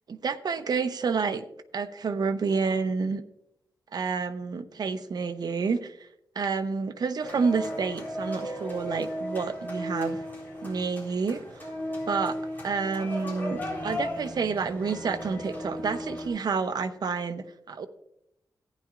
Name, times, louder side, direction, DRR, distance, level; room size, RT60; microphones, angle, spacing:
voice 1, 0.1-1.4 1.7-3.2 3.9-6.0 6.4-10.2 10.6-11.4 12.1-12.4 12.6-17.9, right 5 dB, 60° right, 9 dB, 0.7 m, -29 dB
sound 1, 7.2-16.3, equal, 25° left, 4.0 m, -35 dB
15.0 x 10.0 x 2.5 m, 0.78 s
wide cardioid pair, 145°, 8 cm